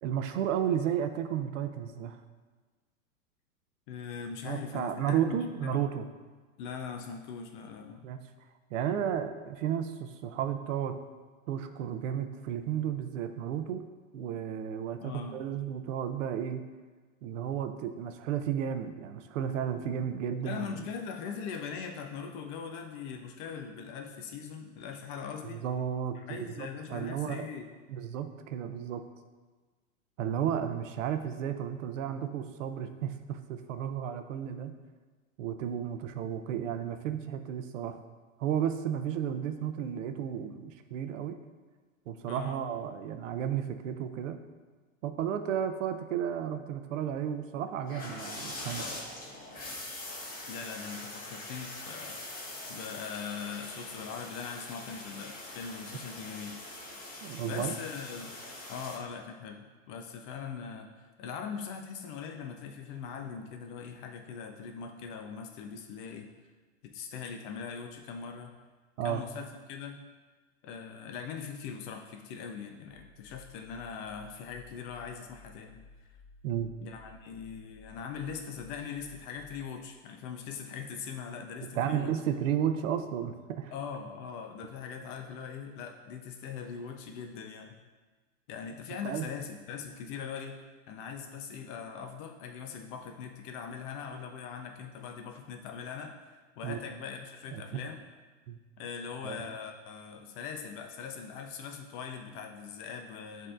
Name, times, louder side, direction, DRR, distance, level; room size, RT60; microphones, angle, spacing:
voice 1, 0.0-2.2 4.4-6.1 8.0-8.2 8.7-10.9 11.5-13.8 14.1-16.6 17.2-20.9 25.4-27.5 27.9-29.0 30.2-34.7 35.4-38.0 38.4-41.4 42.1-44.4 45.0-48.8 57.2-57.7 69.0-69.2 76.4-76.7 81.7-83.7 89.0-89.3 96.6-96.8 97.5-97.8 98.5-98.6 99.2-99.5, right 9 dB, 70° right, 8 dB, 0.5 m, -33 dB
voice 2, 3.9-5.8 6.6-8.0 15.0-15.4 20.4-25.6 26.1-27.7 42.3-42.6 50.5-52.2 52.7-56.6 57.4-58.3 58.7-66.3 66.8-68.5 69.0-70.0 70.6-75.8 76.0-76.1 76.8-82.1 83.7-87.7 88.5-90.6 90.9-96.1 96.6-98.0 98.8-103.5, left 6 dB, 40° left, 4 dB, 0.4 m, -41 dB
sound 1, 47.8-59.0, left 2 dB, 20° left, 1.0 m, -43 dB
sound 2, 72.9-79.7, left 4 dB, 10° right, 0.9 m, -56 dB
7.4 x 2.7 x 2.4 m, 1.4 s
hypercardioid pair, 110°, 40 cm